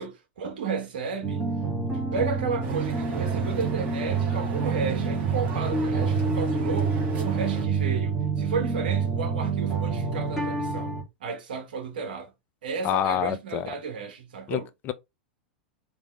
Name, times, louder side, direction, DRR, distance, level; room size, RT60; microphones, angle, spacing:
voice 1, 0.0-1.5 1.9-12.3 12.6-14.7, right 5 dB, 60° right, 1.3 m, -33 dB
sound 1, 1.2-11.0, right 5 dB, 5° right, 2.2 m, -27 dB
sound 2, 2.6-7.7, right 5 dB, 35° right, 1.8 m, -36 dB
voice 2, 12.8-13.7 14.5-14.9, left 10 dB, 35° left, 0.4 m, -27 dB
3.9 x 3.2 x 3.6 m
figure-of-eight pair, 90°, 5 cm